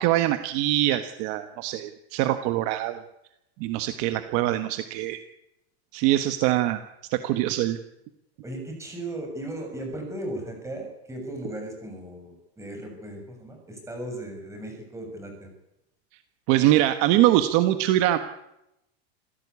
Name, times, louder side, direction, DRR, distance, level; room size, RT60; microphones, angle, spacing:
voice 1, 0.0-3.0 3.6-5.2 5.9-6.8 7.1-7.8 16.5-18.2, right 14 dB, 40° right, 9 dB, 1.4 m, -23 dB
voice 2, 8.4-15.5, right 1 dB, 10° right, 3 dB, 7.0 m, -36 dB
26.5 x 16.5 x 8.5 m, 0.87 s
supercardioid pair, 160°, 34 cm